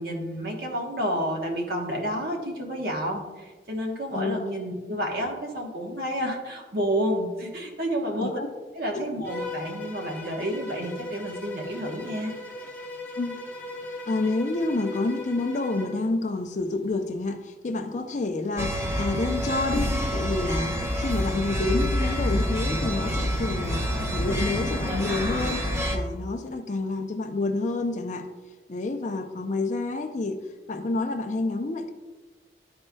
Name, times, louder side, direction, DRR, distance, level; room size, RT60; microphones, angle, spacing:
voice 1, 0.0-8.3 8.8-12.3, equal, 55° right, 1 dB, 1.1 m, -30 dB
voice 2, 4.1-4.5 8.2-8.5 13.2-13.4 13.9-28.3 28.7-31.9, left 2 dB, 40° left, 6 dB, 0.5 m, -29 dB
Bowed string instrument, 9.2-16.0, left 2 dB, 10° left, 1.0 m, -38 dB
sound 1, 18.6-26.0, equal, 15° right, 0.8 m, -27 dB
11.0 x 4.4 x 2.2 m, 1.3 s
head